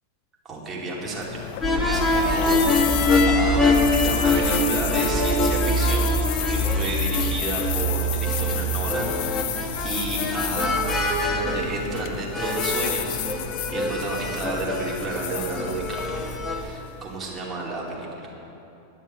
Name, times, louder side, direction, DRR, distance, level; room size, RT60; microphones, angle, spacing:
voice 1, 0.4-1.5 1.7-6.1 6.5-10.9 11.2-13.4 13.7-18.3, right 3 dB, 25° right, -4 dB, 2.6 m, -32 dB
sound 1, 1.0-17.2, left 12 dB, 50° left, 0.5 m, -32 dB
sound 2, 1.6-16.7, left 1 dB, 15° left, 1.3 m, -24 dB
11.0 x 7.1 x 7.9 m, 2.8 s
figure-of-eight pair, 90°, 0 cm